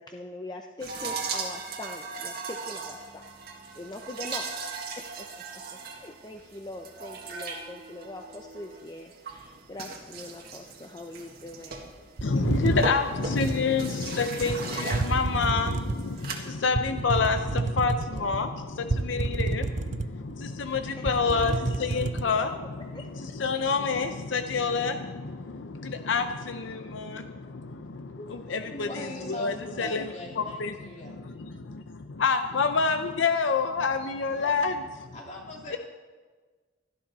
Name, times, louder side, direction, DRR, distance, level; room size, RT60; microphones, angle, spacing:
voice 1, 0.0-3.2 3.7-5.4 5.7-11.9 20.9-22.2 22.9-23.1, left 2 dB, 20° left, 2 dB, 0.7 m, -42 dB
sound 1, 0.8-16.3, right 4 dB, 55° right, 1.8 m, -38 dB
voice 2, 12.2-28.9 29.3-30.0 30.4-30.9 31.2-34.8 35.7-35.8, left 4 dB, 75° left, 8 dB, 0.6 m, -28 dB
sound 2, 12.2-13.6 14.4-14.6 14.9-16.1 16.7-18.4 18.9-20.3 20.7-20.8 21.1-22.3, right 3 dB, 40° right, 0.6 m, -29 dB
voice 3, 28.1-31.2 34.1-34.6 35.1-35.8, left 1 dB, 40° left, -1 dB, 2.8 m, -41 dB
17.5 x 12.5 x 4.1 m, 1.4 s
head